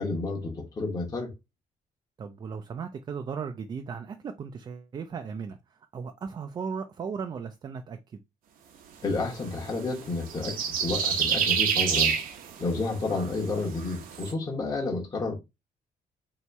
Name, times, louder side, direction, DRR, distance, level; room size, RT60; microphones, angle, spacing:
voice 1, 0.0-1.3 9.0-12.2 12.6-15.3, left 3 dB, 25° left, 1.0 m, -30 dB
voice 2, 2.2-8.2 12.8-12.9, right 6 dB, 30° right, 0.3 m, -37 dB
sound 1, 9.1-14.3, right 7 dB, 75° right, 0.8 m, -29 dB
3.1 x 2.8 x 4.5 m
cardioid pair, 170°, 15 cm